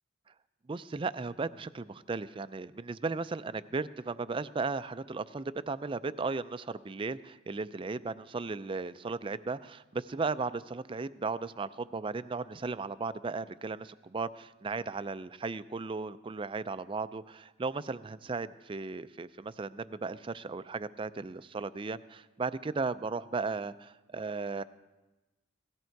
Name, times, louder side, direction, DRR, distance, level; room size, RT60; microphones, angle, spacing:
voice 1, 0.7-24.6, right 4 dB, 25° right, 14 dB, 0.4 m, -36 dB
17.5 x 14.0 x 4.6 m, 1.1 s
head